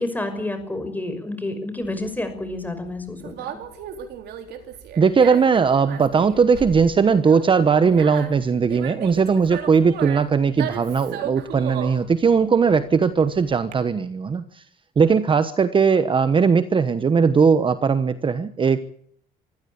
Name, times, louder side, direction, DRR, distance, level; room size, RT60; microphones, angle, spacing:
voice 1, 0.0-3.6, left 2 dB, 10° left, 9 dB, 5.9 m, -29 dB
Conversation, 1.8-13.7, right 9 dB, 75° right, 3.8 m, -36 dB
voice 2, 5.0-14.6 15.0-18.8, right 5 dB, 30° right, 12 dB, 1.1 m, -19 dB
25.0 x 15.0 x 8.6 m, 0.64 s
cardioid pair, 110°, 17 cm